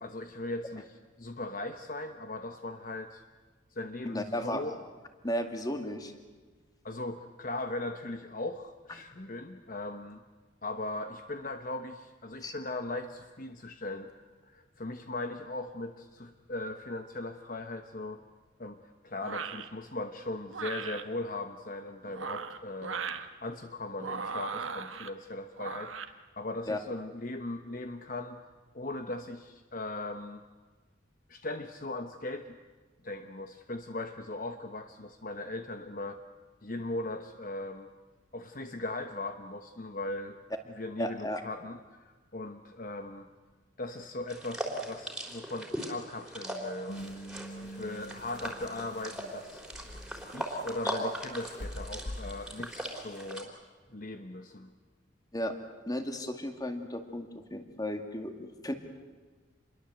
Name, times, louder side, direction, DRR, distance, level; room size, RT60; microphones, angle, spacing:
voice 1, 0.0-3.2 3.7-4.8 6.8-10.2 10.6-14.1 14.4-18.2 18.6-18.8 19.0-23.0 23.4-28.4 28.7-30.4 31.3-32.6 33.0-36.2 36.6-37.9 38.3-40.4 40.7-43.3 43.8-47.2 47.6-49.6 50.3-53.5 53.9-54.7, left 2 dB, 45° left, 7 dB, 1.0 m, -39 dB
voice 2, 4.0-4.6 5.2-6.1 12.4-12.5 26.7-26.8 41.0-41.4 55.3-55.5 55.9-58.7, left 1 dB, 20° left, 6 dB, 2.2 m, -34 dB
sound 1, 19.2-19.7 20.5-21.0 22.0-23.3 24.0-25.1 25.6-26.1, right 5 dB, 90° right, 1.4 m, -38 dB
sound 2, 44.3-53.4, right 1 dB, 5° right, 3.7 m, -39 dB
sound 3, 46.9-52.7 53.2-53.3, equal, 65° left, 1.6 m, -44 dB
28.0 x 22.0 x 8.0 m, 1.3 s
head